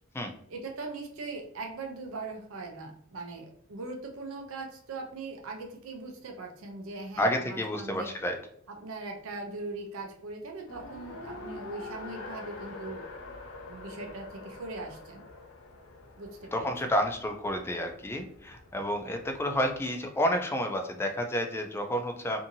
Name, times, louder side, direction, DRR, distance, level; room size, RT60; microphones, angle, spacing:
voice 1, 0.5-8.1 8.7-13.0 13.7-15.2 16.2-16.9, right 3 dB, 75° right, 2 dB, 0.5 m, -40 dB
voice 2, 7.2-8.4 16.5-22.4, equal, 10° left, 5 dB, 0.3 m, -30 dB
Race car auto racing, 10.7-19.8, left 2 dB, 80° left, 0.5 m, -46 dB
2.6 x 2.6 x 2.6 m, 0.66 s
head